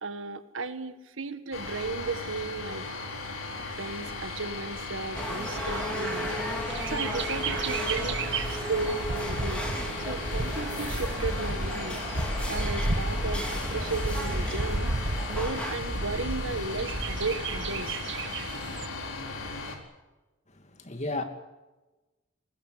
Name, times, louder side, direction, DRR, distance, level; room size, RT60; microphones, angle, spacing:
voice 1, 0.0-2.8 3.7-6.3 6.9-8.2 8.6-9.7 10.1-12.0 12.5-15.0 15.3-18.0, right 3 dB, 85° right, 1.7 m, -35 dB
sound 1, 1.5-19.8, left 3 dB, 85° left, 4.1 m, -36 dB
sound 2, 5.2-15.8, equal, 5° left, 4.0 m, -36 dB
Bird, 5.2-18.9, right 2 dB, 65° right, 2.3 m, -33 dB
voice 2, 20.5-21.2, left 2 dB, 35° left, 2.5 m, -34 dB
21.5 x 19.5 x 8.2 m
head